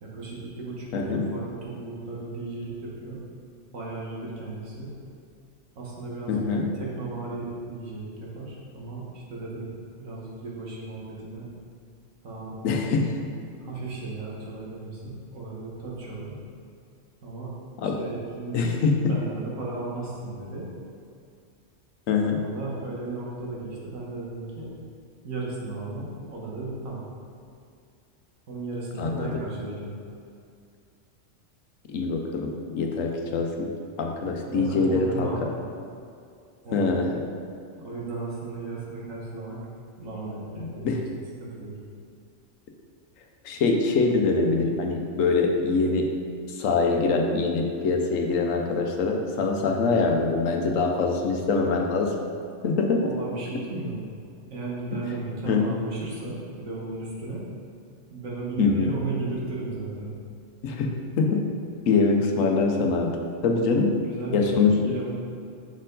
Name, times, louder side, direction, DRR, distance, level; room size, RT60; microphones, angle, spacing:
voice 1, 0.0-3.2 3.7-4.9 5.7-6.5 6.7-9.7 10.0-11.5 12.2-12.6 12.8-13.1 13.6-16.4 17.2-17.5 17.8-20.7 22.3-24.7 25.2-27.0 28.5-29.9 34.4-35.6 36.6-37.0 37.8-39.6 40.0-41.0 41.4-41.8 53.0-54.0 54.5-57.4 58.1-60.1 63.7-65.1, right 3 dB, 90° right, -4 dB, 1.6 m, -35 dB
voice 2, 0.9-1.2 6.3-6.7 12.6-13.1 17.8-18.0 18.5-19.1 22.1-22.4 29.0-29.3 31.9-33.7 34.0-35.3 36.7-37.1 40.6-41.0 43.4-46.1 46.5-52.1 52.6-53.0 55.5-55.6 58.6-58.9 60.6-61.4 61.9-63.1 63.4-63.9 64.3-64.7, left 4 dB, 80° left, 2 dB, 1.1 m, -24 dB
6.2 x 4.4 x 3.8 m, 2.4 s
omnidirectional pair, 1.3 m